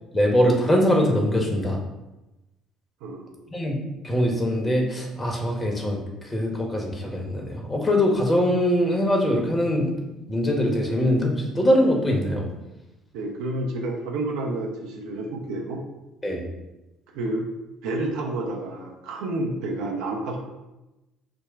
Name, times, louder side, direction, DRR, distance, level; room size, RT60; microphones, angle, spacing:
voice 1, 0.1-1.8 3.5-3.8 4.0-9.9 10.3-12.5 16.2-16.4, equal, 25° left, 1 dB, 1.3 m, -22 dB
voice 2, 3.0-3.5 13.1-15.8 17.1-17.5 17.8-20.4, right 2 dB, 70° right, 0 dB, 0.6 m, -29 dB
5.1 x 2.2 x 4.5 m, 0.99 s
hypercardioid pair, 55°, 0 cm